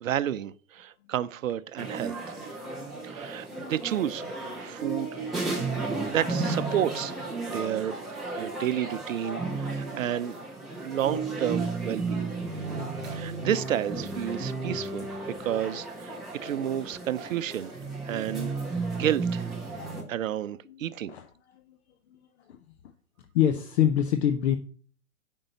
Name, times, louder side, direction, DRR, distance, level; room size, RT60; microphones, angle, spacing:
voice 1, 0.0-2.2 3.0-5.2 6.1-8.0 8.3-10.4 10.8-12.3 13.0-15.1 15.4-17.7 18.0-18.5 18.9-19.5 20.1-21.1, right 10 dB, 65° right, 0.6 m, -31 dB
sound 1, 1.8-20.0, right 3 dB, ahead, 0.3 m, -33 dB
voice 2, 20.7-21.3 21.5-21.8 22.1-22.2 22.5-22.6 23.3-24.6, left 10 dB, 45° left, 0.8 m, -25 dB
8.8 x 5.5 x 6.9 m
hypercardioid pair, 120°, 44 cm